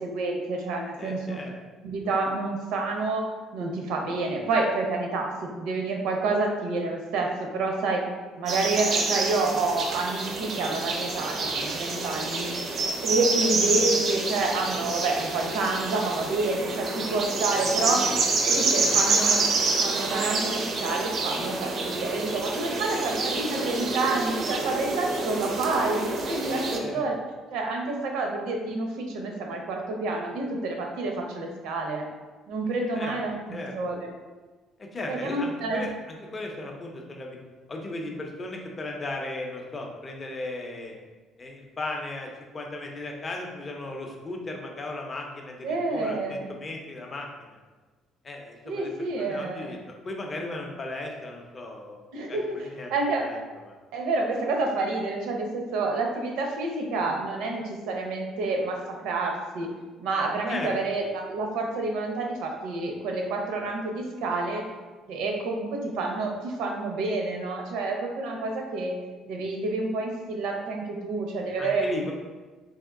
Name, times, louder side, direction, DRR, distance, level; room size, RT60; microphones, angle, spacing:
voice 1, 0.0-1.4 1.8-5.3 5.6-8.0 8.4-12.5 13.0-18.0 18.4-19.5 19.8-27.1 27.5-32.1 32.5-34.1 35.1-35.9 45.6-46.4 48.6-49.6 52.1-53.3 53.9-59.7 60.0-64.6 65.1-69.0 69.2-71.9, right 3 dB, 85° right, 1 dB, 0.7 m, -28 dB
voice 2, 1.0-1.5 13.4-13.5 17.9-18.2 18.5-19.0 26.8-27.0 32.9-33.2 33.5-33.7 34.8-37.4 37.7-40.9 41.4-47.5 48.2-52.0 52.3-52.9 53.2-53.4 53.6-53.8 60.4-60.7 71.6-72.1, left 2 dB, 20° left, 1 dB, 0.5 m, -36 dB
sound 1, 8.5-26.8, right 3 dB, 40° right, 0.4 m, -27 dB
3.6 x 2.8 x 3.6 m, 1.3 s
cardioid pair, 175°, 0 cm